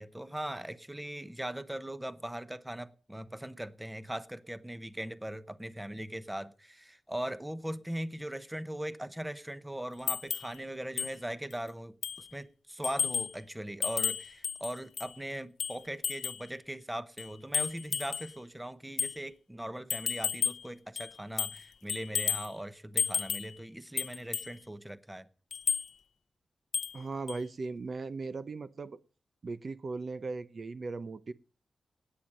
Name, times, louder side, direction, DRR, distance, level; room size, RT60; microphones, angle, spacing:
voice 1, 0.0-25.3, right 1 dB, 10° right, 0.9 m, -40 dB
sound 1, 10.1-10.5 11.0-11.1 11.5-11.6 12.0-12.3 12.8-13.3 13.8-15.1 15.6-16.5 17.2-18.3 19.0-19.2 19.9-20.7 21.0-21.6 21.9-22.5 23.0-23.5 24.0-24.5 25.5-25.9 26.7-27.0 27.3-27.4, left 6 dB, 85° left, 0.7 m, -33 dB
voice 2, 26.9-29.0 29.4-31.3, right 3 dB, 50° right, 0.7 m, -38 dB
18.5 x 9.0 x 6.6 m
wide cardioid pair, 130°, 0 cm